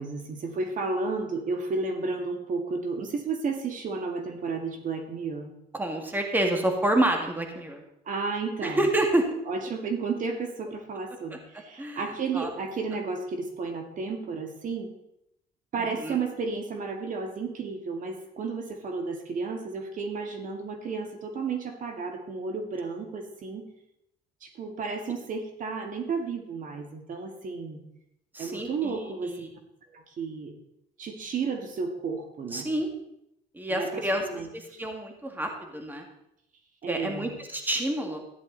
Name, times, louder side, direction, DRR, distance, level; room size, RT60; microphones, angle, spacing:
voice 1, 0.0-5.5 8.1-8.9 9.5-14.9 15.7-23.7 24.4-27.8 28.4-29.5 29.9-30.5 31.0-32.7 33.7-34.8 36.8-37.3, right 4 dB, 50° right, 4 dB, 1.9 m, -32 dB
voice 2, 5.7-7.8 8.6-9.3 11.3-11.4 11.8-12.0 12.3-12.5 16.0-16.2 28.3-29.5 32.5-32.9 33.5-34.2 34.5-36.1 36.9-38.2, right 1 dB, 10° right, 3 dB, 1.8 m, -28 dB
13.5 x 10.5 x 4.0 m, 0.79 s
cardioid pair, 110°, 17 cm